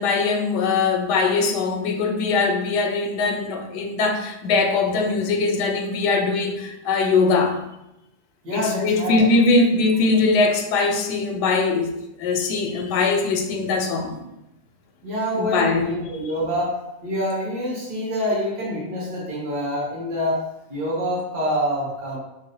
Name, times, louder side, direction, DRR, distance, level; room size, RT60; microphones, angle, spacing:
voice 1, 0.0-7.6 8.5-11.9 12.2-14.2 15.3-15.8, left 3 dB, 85° left, 4 dB, 1.2 m, -21 dB
voice 2, 8.4-9.2 15.0-16.8 17.0-20.4 20.7-22.2, equal, 80° right, -6 dB, 2.1 m, -26 dB
5.8 x 2.1 x 2.7 m, 0.88 s
omnidirectional pair, 1.8 m